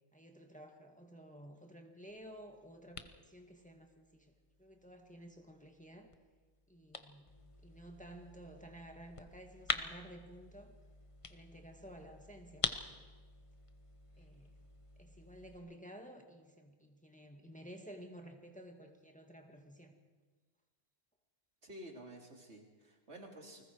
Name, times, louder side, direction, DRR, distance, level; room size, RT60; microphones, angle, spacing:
voice 1, 0.1-4.3 4.6-6.1 6.7-7.3 7.6-10.8 11.3-13.0 14.2-14.5 15.0-19.9, right 1 dB, 5° left, 3 dB, 1.9 m, -53 dB
sound 1, 2.1-15.6, left 3 dB, 30° left, 1.0 m, -46 dB
voice 2, 21.6-23.6, right 1 dB, 85° right, 1 dB, 3.2 m, -51 dB
29.0 x 20.0 x 4.7 m, 1.4 s
omnidirectional pair, 1.1 m